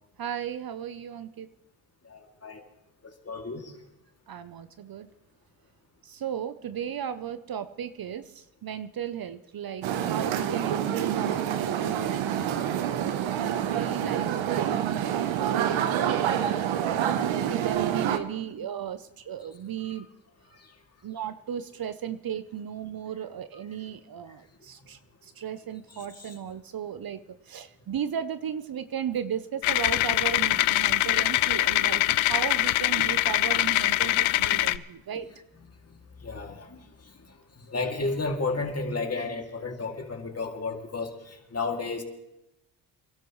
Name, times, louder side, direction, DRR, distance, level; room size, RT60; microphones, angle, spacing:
voice 1, 0.2-1.5 4.3-5.1 6.0-16.6 17.0-20.1 21.0-27.2 27.5-35.3, right 9 dB, 50° right, 12 dB, 0.8 m, -35 dB
voice 2, 2.0-2.6 3.2-3.7 18.6-18.7 20.6-20.7 25.9-26.3 36.2-37.1 37.5-42.0, left 3 dB, 30° left, 2 dB, 2.7 m, -33 dB
sound 1, 9.8-18.2, right 10 dB, 80° right, 1.1 m, -27 dB
sound 2, 29.6-34.8, left 17 dB, 85° left, 0.6 m, -23 dB
26.5 x 12.0 x 3.2 m, 0.89 s
cardioid pair, 70°, 46 cm